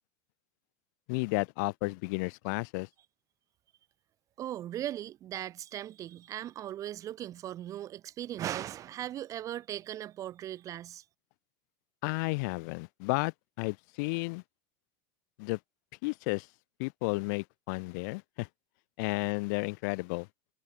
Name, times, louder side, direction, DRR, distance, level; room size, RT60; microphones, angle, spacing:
voice 1, 1.1-2.9 12.0-14.4 15.4-15.6 16.0-16.5 16.8-18.5 19.0-20.3, left 29 dB, 60° left, 1.0 m, -32 dB
voice 2, 4.4-11.0, right 12 dB, 30° right, 1.8 m, -38 dB
supercardioid pair, 155°, 11 cm